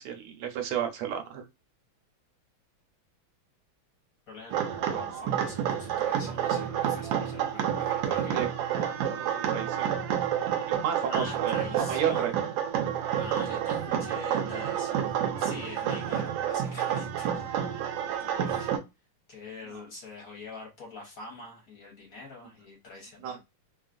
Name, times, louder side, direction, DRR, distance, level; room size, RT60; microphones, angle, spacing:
voice 1, 0.0-1.4 8.3-8.5 9.5-9.9 10.7-11.5 11.9-12.3 13.2-13.3 19.7-19.8 23.2-23.4, right 9 dB, 90° right, 5 dB, 1.6 m, -31 dB
voice 2, 4.3-8.4 11.1-12.3 13.1-18.7 19.3-23.4, left 2 dB, 50° left, -1 dB, 1.2 m, -44 dB
sound 1, 4.5-18.8, right 9 dB, 75° right, 1.3 m, -29 dB
3.5 x 2.4 x 2.4 m, 0.23 s
omnidirectional pair, 2.3 m